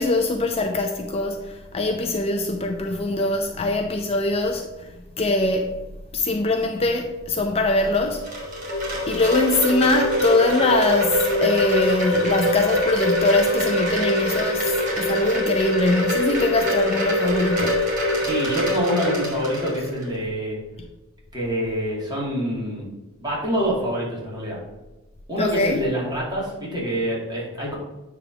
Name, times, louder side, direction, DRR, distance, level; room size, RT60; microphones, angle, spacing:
voice 1, 0.0-4.7 5.2-5.7 6.1-8.3 9.1-17.8 25.4-25.8, left 2 dB, 30° left, 0.5 m, -22 dB
Wind chime, 7.8-20.1, left 1 dB, 40° right, 2.7 m, -23 dB
voice 2, 18.2-20.6 21.3-22.9 23.2-24.6 25.3-27.8, equal, 20° right, 2.4 m, -26 dB
8.8 x 3.5 x 5.8 m
head